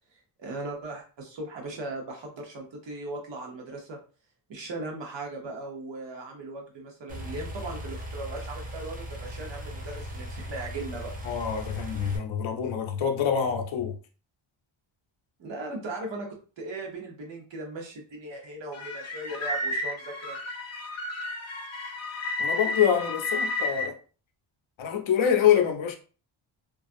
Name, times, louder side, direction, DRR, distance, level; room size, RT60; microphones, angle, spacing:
voice 1, 0.4-4.0 4.5-11.1 15.4-20.4, right 2 dB, 60° right, 0.9 m, -38 dB
sound 1, 7.1-12.2, equal, 20° right, 0.4 m, -38 dB
voice 2, 11.2-14.0 22.4-24.0 24.8-26.0, left 8 dB, 70° left, 0.6 m, -25 dB
sound 2, 18.7-23.9, left 2 dB, 35° left, 0.7 m, -32 dB
2.4 x 2.3 x 2.5 m
wide cardioid pair, 155°, 49 cm